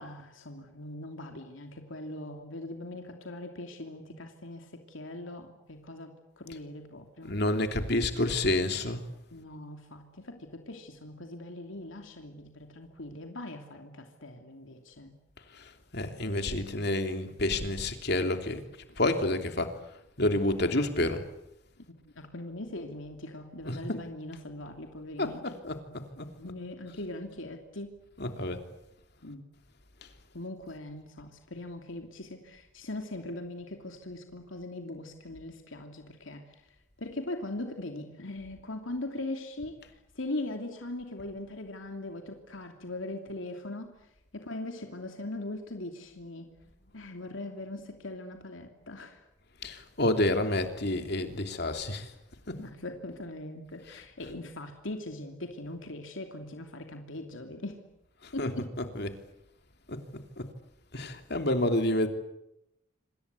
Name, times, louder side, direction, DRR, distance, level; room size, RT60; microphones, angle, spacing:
voice 1, 0.0-7.3 9.3-15.1 22.2-25.5 26.4-28.0 29.2-29.4 30.3-36.4 37.0-39.8 40.1-44.0 44.3-46.5 46.9-49.2 52.6-57.8 58.3-58.8, left 2 dB, 75° left, 4 dB, 2.9 m, -40 dB
voice 2, 7.3-9.0 15.9-18.6 19.0-19.7 20.2-21.2 23.6-24.0 25.2-25.8 26.2-26.3 28.2-28.6 49.6-52.0 52.5-52.6 58.4-59.1 59.9-60.0 60.9-62.1, left 1 dB, 55° left, 6 dB, 3.0 m, -29 dB
27.0 x 26.5 x 8.3 m, 0.84 s
head